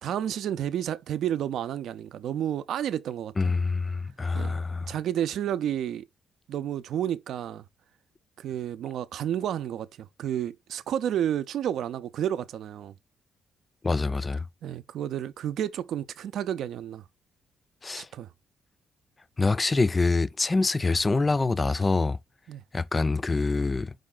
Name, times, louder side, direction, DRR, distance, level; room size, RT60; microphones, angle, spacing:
voice 1, 0.0-3.5 4.3-6.0 6.5-7.6 8.4-12.9 14.6-17.0 17.9-18.3 22.5-22.6, right 10 dB, 75° right, 0.4 m, -31 dB
voice 2, 3.4-4.9 13.8-14.5 17.8-18.1 19.4-22.2 22.7-23.9, left 3 dB, 25° left, 0.3 m, -25 dB
4.9 x 2.4 x 3.7 m
cardioid pair, 90°, 0 cm